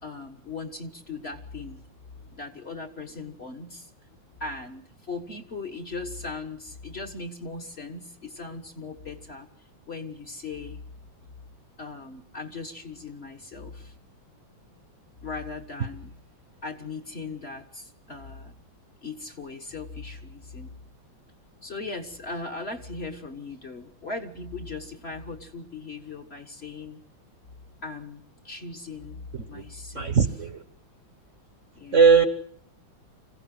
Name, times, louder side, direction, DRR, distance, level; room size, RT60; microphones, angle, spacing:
voice 1, 0.0-1.8 2.2-3.9 4.4-9.5 9.8-10.8 11.8-13.9 15.2-16.2 16.6-18.5 19.0-20.7 21.6-27.0 27.8-30.2 31.7-32.0, left 3 dB, 35° left, 4 dB, 1.5 m, -38 dB
voice 2, 29.9-30.6 31.9-32.3, right 5 dB, 45° right, 10 dB, 1.3 m, -19 dB
26.0 x 16.0 x 7.8 m, 0.63 s
omnidirectional pair, 2.1 m